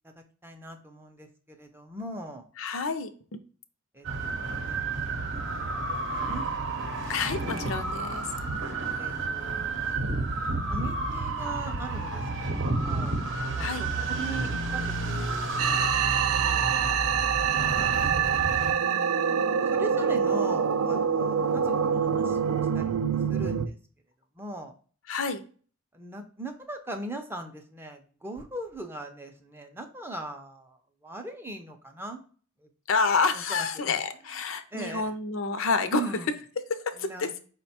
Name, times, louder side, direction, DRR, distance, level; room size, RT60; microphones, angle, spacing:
voice 1, 0.4-2.4 3.9-6.4 9.0-9.9 10.7-12.2 12.5-13.2 13.6-13.9 14.2-15.9 16.4-18.4 18.7-22.4 22.7-22.9 23.3-23.8 24.4-24.7 25.9-32.2 32.6-32.7 33.3-34.0 34.7-35.1 35.9-36.3 37.0-37.3, right 2 dB, 10° right, 4 dB, 0.4 m, -40 dB
voice 2, 2.6-3.4 7.1-8.3 13.6-13.8 25.1-25.4 32.9-36.1 36.7-37.3, left 4 dB, 70° left, 9 dB, 0.5 m, -28 dB
sound 1, 4.0-18.7, right 3 dB, 60° right, 0.7 m, -30 dB
sound 2, 15.6-23.7, right 7 dB, 85° right, 0.3 m, -25 dB
4.9 x 2.2 x 4.1 m, 0.41 s
head